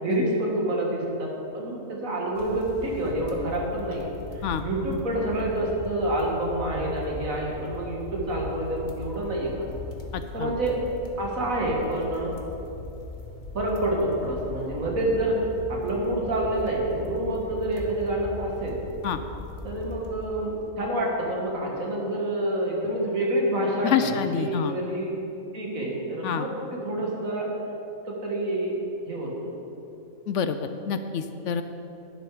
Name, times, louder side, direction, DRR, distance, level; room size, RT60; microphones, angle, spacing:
voice 1, 0.0-4.1 4.6-9.7 10.3-10.8 11.2-12.4 13.5-18.8 19.6-25.2 25.5-27.5 28.1-28.8 29.1-29.5, right 1 dB, 75° right, -2 dB, 2.4 m, -28 dB
crackling fire, 2.3-20.7, left 2 dB, 35° left, 1.2 m, -39 dB
voice 2, 10.1-10.6 19.0-19.2 23.8-24.7 26.2-26.5 30.3-31.6, left 7 dB, 70° left, 10 dB, 0.8 m, -27 dB
11.5 x 10.5 x 5.0 m, 3.0 s
omnidirectional pair, 1.4 m